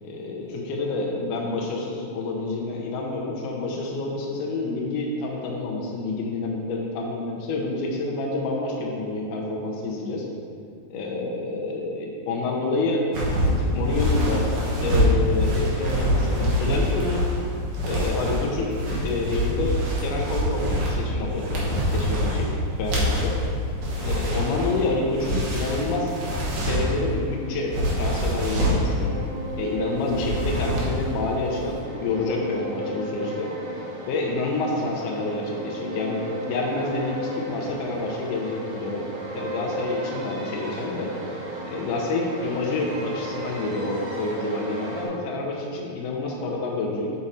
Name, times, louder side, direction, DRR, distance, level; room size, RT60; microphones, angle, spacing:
voice 1, 0.0-10.2 10.9-14.5 14.8-17.2 17.8-18.7 19.0-22.5 22.8-23.3 24.0-26.2 26.7-29.2 29.6-39.0 39.3-41.4 41.6-47.1, left 2 dB, 85° left, -2 dB, 1.8 m, -28 dB
sound 1, 13.1-27.1 27.6-28.9 30.0-31.1 31.4-31.7, equal, 90° right, 1.4 m, -25 dB
sound 2, 27.0-45.1, right 1 dB, 70° right, 1.7 m, -35 dB
8.5 x 3.9 x 4.1 m, 2.3 s
omnidirectional pair, 4.6 m